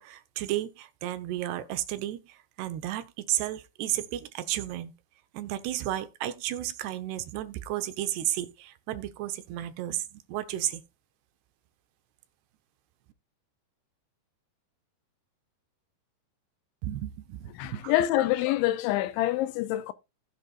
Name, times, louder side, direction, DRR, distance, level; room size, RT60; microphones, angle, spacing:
voice 1, 0.0-4.9 5.3-10.8 16.8-17.9, right 13 dB, 75° right, 2.8 m, -33 dB
voice 2, 17.6-19.9, left 15 dB, 90° left, 3.2 m, -26 dB
16.0 x 7.7 x 2.4 m
omnidirectional pair, 5.2 m